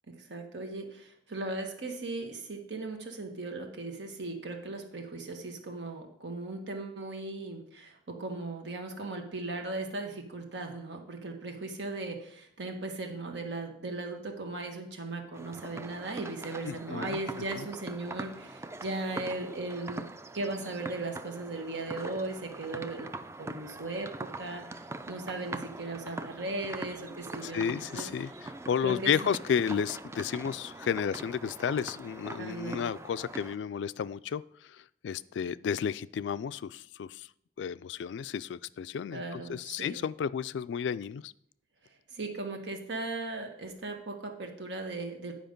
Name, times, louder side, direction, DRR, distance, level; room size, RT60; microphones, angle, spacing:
voice 1, 0.1-20.0 20.3-23.1 23.4-24.6 25.1-28.1 28.8-29.3 32.4-32.9 39.1-40.0 42.1-45.3, right 2 dB, 80° right, 3 dB, 1.5 m, -37 dB
sound 1, 15.3-33.6, right 2 dB, 15° right, 0.4 m, -43 dB
voice 2, 16.7-17.2 17.6-17.7 27.4-37.3 37.6-41.3, left 7 dB, 80° left, 17 dB, 0.3 m, -32 dB
10.0 x 5.1 x 5.2 m, 0.71 s
head